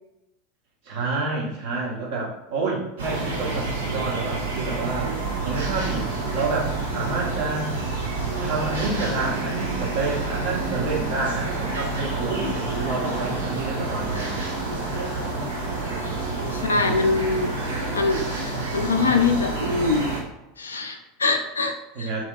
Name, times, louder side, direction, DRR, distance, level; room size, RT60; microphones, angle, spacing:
voice 1, 0.8-5.2 5.4-7.7 8.4-12.5 12.8-14.4 16.7-17.4 21.9-22.3, right 3 dB, 55° right, -3 dB, 0.9 m, -29 dB
sound 1, 3.0-20.2, right 3 dB, 70° right, 0.6 m, -28 dB
voice 2, 16.5-17.6 17.9-20.1 20.6-22.1, left 4 dB, 80° left, 4 dB, 0.3 m, -24 dB
2.9 x 2.6 x 2.3 m, 0.91 s
figure-of-eight pair, 80°, 0 cm